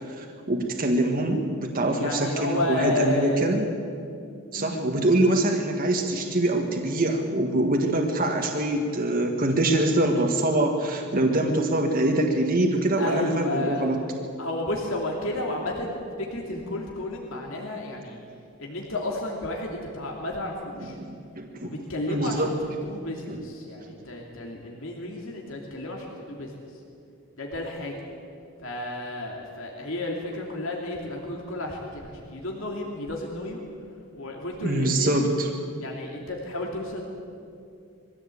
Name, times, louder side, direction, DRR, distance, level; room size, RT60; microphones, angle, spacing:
voice 1, 0.1-3.7 4.5-14.0 21.0-21.7 22.1-22.5 23.3-23.4 23.8-23.9 34.6-35.5, right 1 dB, 40° right, 2 dB, 1.7 m, -24 dB
voice 2, 2.0-3.5 4.5-4.9 13.0-13.9 14.4-18.2 18.6-21.0 21.6-22.5 22.8-26.5 27.4-28.0 28.6-33.6 34.1-35.2 35.8-37.0, left 1 dB, 65° left, -1 dB, 2.8 m, -32 dB
22.5 x 15.5 x 8.5 m, 2.5 s
head